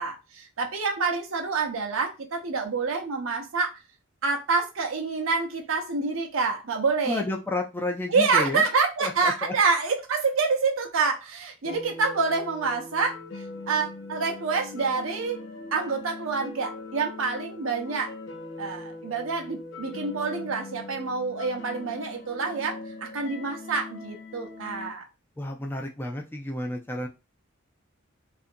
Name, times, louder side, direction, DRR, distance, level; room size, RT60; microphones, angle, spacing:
voice 1, 0.0-3.7 4.2-7.2 8.1-18.1 18.6-25.1, right 4 dB, 85° right, 0.7 m, -27 dB
voice 2, 7.1-8.6 9.0-9.5 25.4-27.1, left 2 dB, 10° left, 0.3 m, -31 dB
sound 1, 11.6-24.9, left 3 dB, 65° left, 0.6 m, -41 dB
2.7 x 2.5 x 2.5 m
head